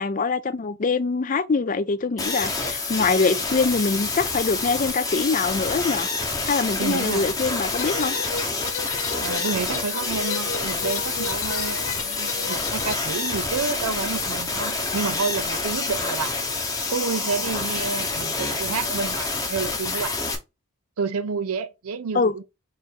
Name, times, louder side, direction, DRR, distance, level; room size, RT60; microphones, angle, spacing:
voice 1, 0.0-6.1 6.4-8.2 22.1-22.3, left 4 dB, 35° left, 0.4 m, -24 dB
sound 1, 2.2-20.3, left 3 dB, 15° left, 0.8 m, -27 dB
voice 2, 6.8-7.3 9.2-16.3 16.9-20.2 21.0-22.4, right 5 dB, 80° right, 0.5 m, -29 dB
sound 2, 7.8-13.0, left 6 dB, 65° left, 0.7 m, -33 dB
4.8 x 2.6 x 4.3 m
head